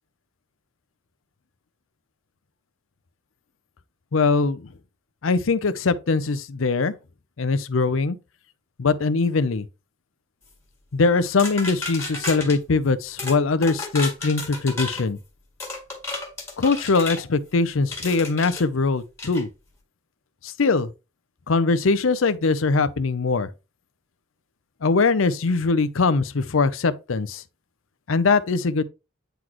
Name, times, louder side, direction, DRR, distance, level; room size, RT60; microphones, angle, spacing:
voice 1, 4.1-4.7 5.2-6.9 7.4-8.2 8.8-9.7 10.9-15.2 16.6-19.5 20.4-20.9 21.5-23.5 24.8-27.4 28.1-28.8, left 4 dB, 80° left, 0.6 m, -22 dB
sound 1, 11.4-12.6 13.2-13.4 13.6-15.1 15.6-17.2 17.9-18.6 19.2-19.4, left 3 dB, 15° left, 2.0 m, -32 dB
9.1 x 4.0 x 3.0 m
head